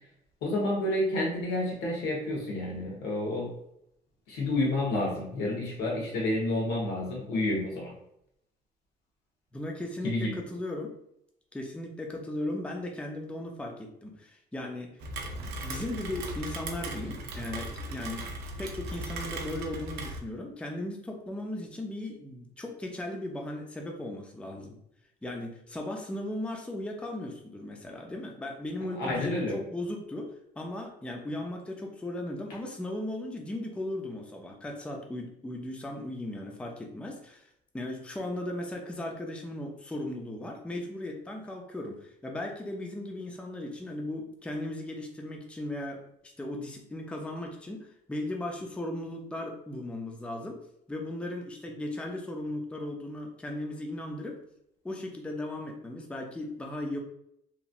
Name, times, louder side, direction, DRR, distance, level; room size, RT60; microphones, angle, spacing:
voice 1, 0.4-3.5 4.3-7.9 10.0-10.3 29.0-29.6, left 1 dB, 85° left, -2 dB, 1.1 m, -29 dB
voice 2, 9.5-10.9 11.5-14.9 15.4-24.8 25.2-37.5 37.7-50.6 50.9-54.4 54.8-57.0, left 1 dB, 5° left, 1 dB, 0.4 m, -37 dB
Rain, 15.0-20.2, right 1 dB, 75° right, 0.5 m, -37 dB
3.0 x 2.6 x 2.4 m, 0.75 s
cardioid pair, 110°, 17 cm